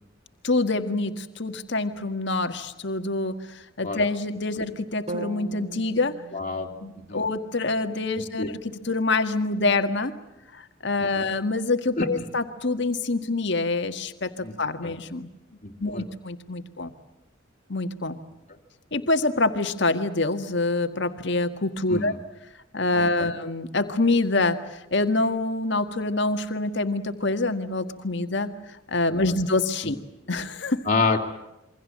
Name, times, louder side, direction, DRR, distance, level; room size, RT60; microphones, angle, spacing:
voice 1, 0.4-6.1 6.8-10.1 10.5-14.3 14.6-15.3 15.8-16.9 17.7-18.2 18.9-22.1 22.7-28.5 28.9-30.0 30.3-30.9, left 2 dB, 60° left, 8 dB, 1.7 m, -26 dB
sound 1, 5.1-9.1, right 2 dB, 35° right, 1.6 m, -41 dB
voice 2, 6.3-6.7 7.1-7.2 8.4-8.5 11.2-11.3 12.0-12.1 14.4-14.5 14.8-14.9 15.6-16.0 21.9-22.2 23.2-23.3 30.9-31.3, left 3 dB, 35° left, 0 dB, 2.5 m, -26 dB
28.0 x 23.5 x 7.5 m, 0.93 s
head